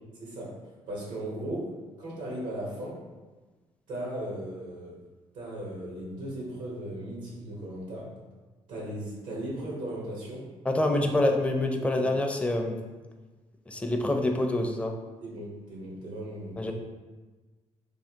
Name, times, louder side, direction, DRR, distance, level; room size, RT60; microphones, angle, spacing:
voice 1, 0.2-0.6 0.9-1.7 2.0-3.0 3.9-5.0 5.3-8.2 8.7-10.5 10.9-11.0 11.9-12.0 15.2-16.6, right 1 dB, 85° right, -4 dB, 1.1 m, -37 dB
voice 2, 10.6-12.8 13.7-14.9 16.6-16.7, left 1 dB, 10° left, 2 dB, 0.4 m, -26 dB
3.4 x 2.2 x 2.8 m, 1.3 s
supercardioid pair, 65°, 13 cm